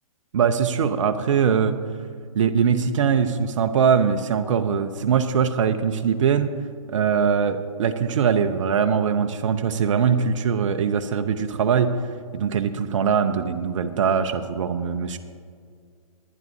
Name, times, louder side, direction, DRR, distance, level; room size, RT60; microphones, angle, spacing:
voice 1, 0.3-1.8 2.3-6.5 6.9-11.9 12.3-15.2, right 7 dB, 60° right, 7 dB, 0.7 m, -22 dB
20.0 x 11.0 x 2.7 m, 2.1 s
hypercardioid pair, 140°, 18 cm